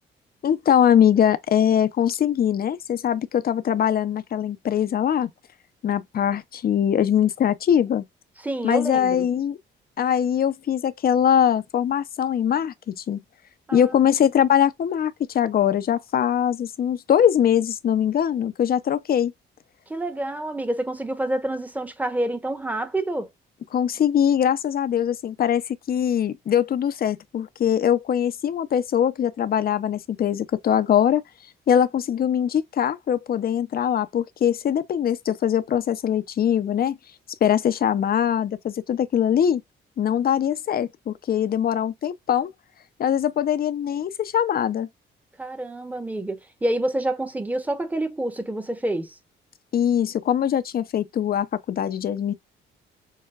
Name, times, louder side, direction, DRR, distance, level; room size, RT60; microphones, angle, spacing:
voice 1, 0.4-5.3 5.8-8.0 8.6-9.6 10.0-13.2 13.7-19.3 23.7-25.6 25.9-31.2 31.7-37.0 37.4-39.6 40.0-42.5 43.0-44.9 49.7-52.3, left 9 dB, 50° left, 0.6 m, -22 dB
voice 2, 8.4-9.3 13.7-13.9 19.9-23.3 45.4-49.2, right 1 dB, 10° right, 1.0 m, -28 dB
6.5 x 2.2 x 2.4 m
cardioid pair, 90°, 20 cm